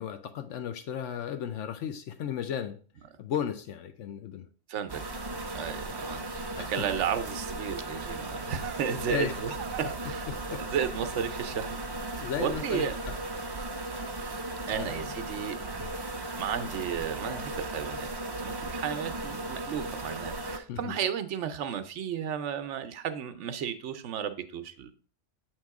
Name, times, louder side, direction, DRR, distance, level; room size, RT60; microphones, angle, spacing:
voice 1, 0.0-2.8 3.2-4.5 6.6-6.8 9.1-9.4 10.3-10.7 12.2-13.1 14.7-15.1 15.8-15.9 20.7-21.0, left 9 dB, 80° left, 0.9 m, -35 dB
voice 2, 4.7-5.0 5.5-6.4 6.7-11.8 12.1-13.0 14.7-15.8 16.4-18.1 18.4-24.9, right 8 dB, 75° right, 1.0 m, -33 dB
sound 1, 4.9-20.6, right 2 dB, 30° right, 0.5 m, -36 dB
7.4 x 3.0 x 4.6 m
omnidirectional pair, 1.2 m